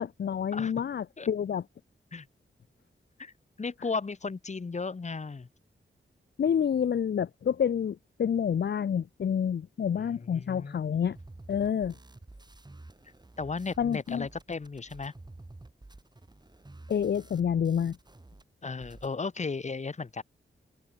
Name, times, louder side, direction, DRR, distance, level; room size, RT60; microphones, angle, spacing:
voice 1, 0.0-1.7 6.4-11.2 11.5-11.9 13.8-14.3 16.9-18.0, left 8 dB, 60° left, 0.5 m, -28 dB
voice 2, 3.6-5.5 10.3-11.1 13.4-15.1 18.6-20.2, left 4 dB, 35° left, 1.1 m, -35 dB
sound 1, 11.2-18.4 18.7-19.2, right 2 dB, 20° right, 3.4 m, -51 dB
wide cardioid pair, 130°, 20 cm